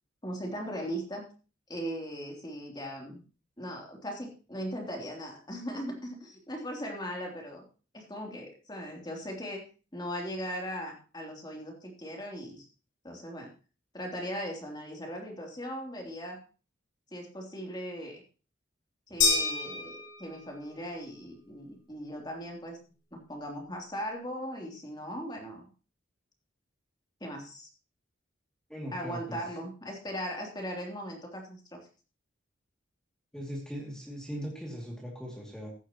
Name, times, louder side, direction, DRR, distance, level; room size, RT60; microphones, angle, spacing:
voice 1, 0.2-1.3 1.7-3.2 3.6-7.6 7.9-9.6 9.9-12.7 13.0-13.5 13.9-16.4 17.1-18.2 19.1-22.8 23.1-25.7 27.2-27.7 28.9-31.8, equal, 20° left, 0 dB, 3.1 m, -38 dB
sound 1, 19.2-20.7, left 4 dB, 80° left, 6.6 m, -28 dB
voice 2, 28.7-29.4 33.3-35.7, equal, 5° left, -2 dB, 2.5 m, -39 dB
15.5 x 12.0 x 3.0 m, 0.35 s
head